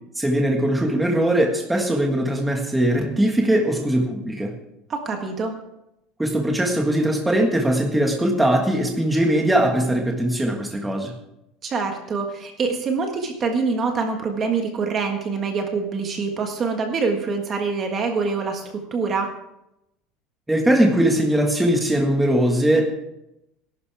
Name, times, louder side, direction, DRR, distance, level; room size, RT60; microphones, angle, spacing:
voice 1, 0.2-4.5 6.2-11.1 20.5-22.9, right 1 dB, 5° right, 1 dB, 1.6 m, -20 dB
voice 2, 4.9-5.5 11.6-19.3, right 4 dB, 25° right, 3 dB, 1.5 m, -25 dB
19.5 x 11.5 x 3.5 m, 0.83 s
cardioid pair, 175°, 0 cm